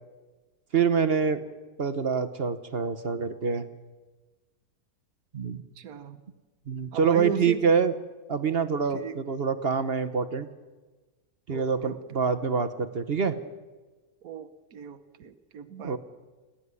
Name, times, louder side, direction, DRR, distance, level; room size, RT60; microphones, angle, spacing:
voice 1, 0.7-1.4 1.8-3.6 5.3-5.6 6.7-7.9 8.3-10.5 11.5-13.4 15.8-16.0, right 6 dB, 45° right, 11 dB, 1.1 m, -26 dB
voice 2, 5.8-6.2 6.9-7.7 8.9-9.2 11.5-12.0 14.2-16.0, right 6 dB, 65° right, 6 dB, 1.5 m, -37 dB
29.0 x 11.5 x 9.7 m, 1.3 s
omnidirectional pair, 1.7 m